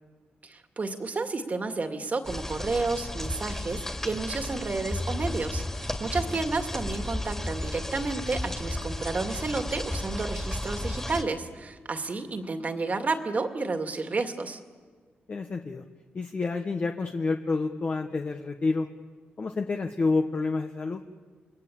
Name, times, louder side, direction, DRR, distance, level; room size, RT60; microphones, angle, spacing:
voice 1, 0.4-14.6, right 3 dB, 40° right, 6 dB, 2.3 m, -31 dB
sound 1, 2.2-11.2, left 1 dB, 10° left, 2.5 m, -33 dB
voice 2, 15.3-15.8 16.1-18.9 19.4-21.0, left 3 dB, 45° left, 4 dB, 1.3 m, -28 dB
28.5 x 21.0 x 8.7 m, 1.5 s
cardioid pair, 85°, 4 cm